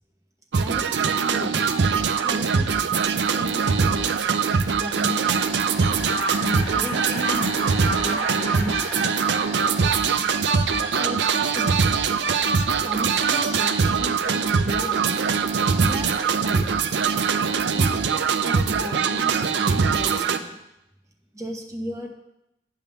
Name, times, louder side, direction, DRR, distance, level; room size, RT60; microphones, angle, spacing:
sound 1, 0.5-20.4, right 5 dB, 70° right, 0.5 m, -22 dB
voice 1, 0.6-1.5 2.2-2.8 3.3-4.2 4.8-5.7 6.4-9.4 10.7-11.9 12.6-15.2 15.8-16.9 17.7-20.6 21.3-22.1, equal, 15° right, 2 dB, 0.9 m, -36 dB
sound 2, 4.6-10.8, left 1 dB, 10° left, 2.1 m, -37 dB
9.2 x 3.5 x 6.8 m, 0.86 s
head